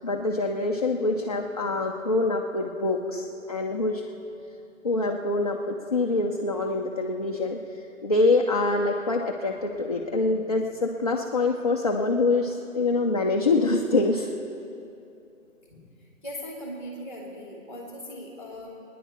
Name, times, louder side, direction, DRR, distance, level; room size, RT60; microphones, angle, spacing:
voice 1, 0.0-4.0 4.8-7.6 8.0-14.3, left 3 dB, 30° left, -1 dB, 0.5 m, -25 dB
voice 2, 15.7-18.8, equal, 5° right, -2 dB, 1.9 m, -39 dB
25.0 x 10.0 x 4.3 m, 2.7 s
hypercardioid pair, 160°, 42 cm